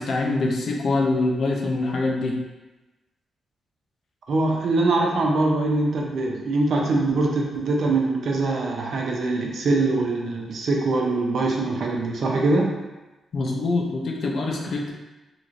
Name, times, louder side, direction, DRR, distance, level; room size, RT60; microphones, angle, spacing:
voice 1, 0.0-2.4 13.3-14.9, left 2 dB, 55° left, 0 dB, 0.5 m, -24 dB
voice 2, 4.3-12.7, right 2 dB, 60° right, -1 dB, 0.5 m, -23 dB
3.0 x 2.8 x 2.5 m, 1.1 s
wide cardioid pair, 145°, 0 cm